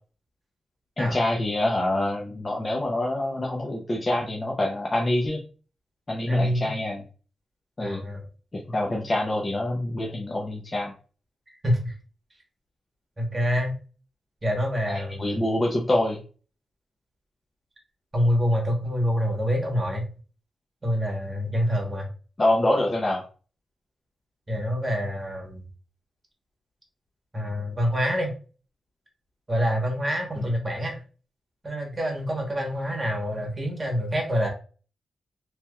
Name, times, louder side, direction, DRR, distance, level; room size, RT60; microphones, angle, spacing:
voice 1, 1.0-5.4 6.1-7.0 7.8-8.0 8.5-10.9 14.9-16.2 22.4-23.2, left 1 dB, 25° left, -1 dB, 0.5 m, -26 dB
voice 2, 6.3-6.7 7.8-8.2 11.6-11.9 13.2-13.7 14.4-15.3 18.1-20.1 20.8-22.1 24.5-25.6 27.3-28.3 29.5-31.0 31.6-34.5, equal, 20° right, 0 dB, 1.1 m, -26 dB
3.3 x 2.8 x 2.2 m, 0.38 s
wide cardioid pair, 130°, 0 cm